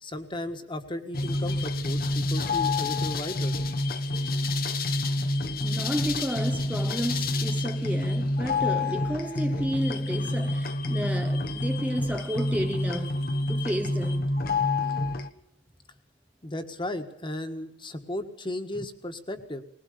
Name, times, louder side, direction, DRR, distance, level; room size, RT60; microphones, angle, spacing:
voice 1, 0.0-3.5 16.4-19.6, left 1 dB, 25° left, 1.6 m, -35 dB
sound 1, 1.1-15.3, left 2 dB, 55° left, 1.1 m, -28 dB
voice 2, 5.6-13.2 13.5-14.3, equal, 10° right, 0.7 m, -32 dB
20.5 x 20.0 x 6.8 m
head